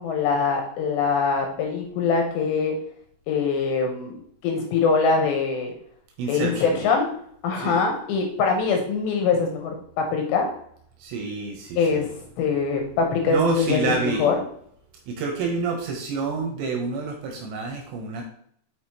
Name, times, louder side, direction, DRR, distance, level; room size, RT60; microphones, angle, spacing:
voice 1, 0.0-2.7 3.3-4.2 4.4-5.7 6.3-7.1 7.4-10.5 11.8-12.1 12.4-14.4, left 5 dB, 75° left, 2 dB, 2.8 m, -23 dB
voice 2, 6.2-6.8 7.6-7.8 11.0-12.0 13.3-14.3 15.1-18.2, right 4 dB, 75° right, 3 dB, 2.9 m, -28 dB
6.4 x 6.0 x 2.9 m, 0.65 s
omnidirectional pair, 5.6 m